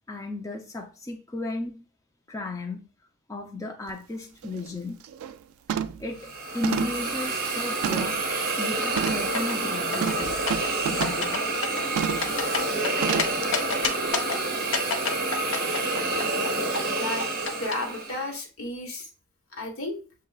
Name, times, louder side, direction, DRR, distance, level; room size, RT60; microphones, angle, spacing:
voice 1, 0.1-1.9 2.3-2.9 3.3-5.0 6.0-8.3 8.6-10.4 10.9-11.7, left 2 dB, 15° left, 0.4 m, -34 dB
sound 1, 3.9-4.0 4.4-4.7 5.0-5.4 5.7-6.1 6.6-8.3 9.0-9.3 10.0-11.3 12.0-12.3 13.0-13.4 13.8-13.9, right 8 dB, 85° right, 0.3 m, -30 dB
Hiss, 6.2-18.3, right 2 dB, 45° right, 0.8 m, -28 dB
sound 2, 8.8-9.6 9.9-10.7 11.0-11.4 11.6-13.2 13.5-14.4 14.7-16.5 16.7-17.7, left 5 dB, 65° left, 0.6 m, -28 dB
voice 2, 16.8-17.3 17.6-19.1 19.5-20.0, left 2 dB, 85° left, 1.1 m, -33 dB
6.4 x 2.8 x 2.3 m
head